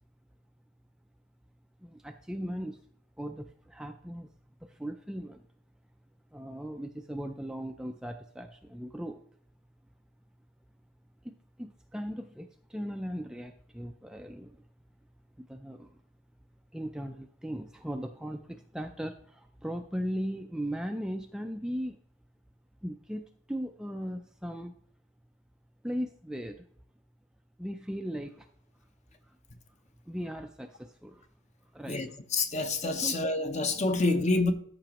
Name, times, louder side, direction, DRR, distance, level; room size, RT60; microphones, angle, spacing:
voice 1, 1.8-2.8 3.2-4.3 4.6-5.5 6.3-9.2 11.2-14.6 15.4-16.0 16.7-22.0 22.8-24.7 25.8-26.6 27.6-28.5 29.2-29.4 30.1-31.3 31.7-32.0 33.0-33.1, equal, 5° right, 0.3 m, -38 dB
voice 2, 31.9-34.5, left 2 dB, 35° left, 0.8 m, -27 dB
13.5 x 5.8 x 3.0 m
head